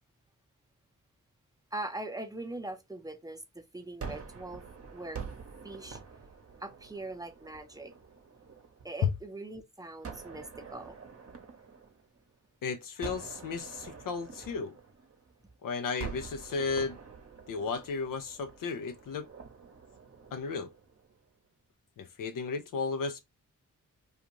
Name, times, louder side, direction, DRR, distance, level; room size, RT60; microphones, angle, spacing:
voice 1, 1.7-4.6 4.9-5.2 5.6-6.0 6.6-7.9 8.8-11.0, right 2 dB, 10° right, 0.6 m, -41 dB
Gunshot gunfire, 4.0-9.1 10.0-12.5 13.0-15.5 16.0-21.2, right 5 dB, 45° right, 0.8 m, -46 dB
voice 2, 12.6-14.8 15.6-17.0 17.5-19.3 20.3-20.7 22.0-23.2, left 5 dB, 75° left, 0.5 m, -34 dB
2.4 x 2.4 x 2.9 m
cardioid pair, 50°, 33 cm